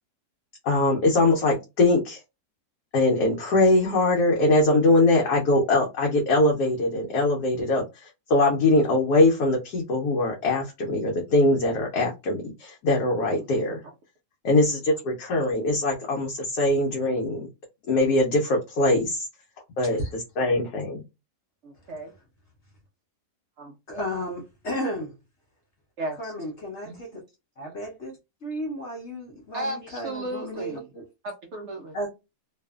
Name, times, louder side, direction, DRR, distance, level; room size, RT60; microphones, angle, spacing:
voice 1, 0.6-2.2 2.9-13.8 14.4-17.5 17.9-19.3 19.8-20.0 20.4-21.0, left 2 dB, 75° left, 1.2 m, -22 dB
voice 2, 13.4-13.7 21.6-22.1 23.6-23.8 26.0-26.4 26.8-27.0 29.5-30.9 31.2-32.0, right 1 dB, 75° right, 0.6 m, -35 dB
voice 3, 23.9-25.2 26.2-27.2 27.6-28.1 28.4-31.1 31.9-32.1, equal, 55° left, 0.9 m, -33 dB
2.7 x 2.4 x 2.3 m
omnidirectional pair, 1.7 m